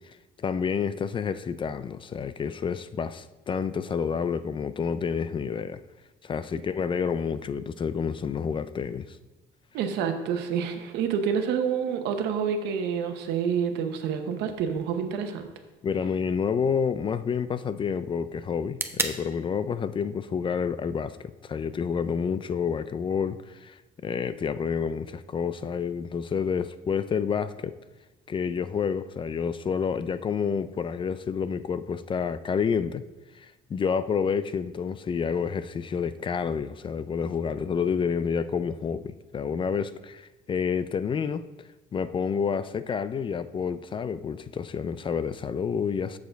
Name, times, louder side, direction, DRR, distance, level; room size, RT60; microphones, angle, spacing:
voice 1, 0.0-5.8 6.2-9.2 15.8-27.7 28.3-33.0 33.4-41.4 41.9-46.2, left 6 dB, 30° left, 0.4 m, -29 dB
voice 2, 9.7-15.5, right 7 dB, 90° right, 1.0 m, -28 dB
sound 1, 14.7-22.7, right 2 dB, 15° right, 0.7 m, -40 dB
7.3 x 6.7 x 4.6 m
cardioid pair, 110°, 17 cm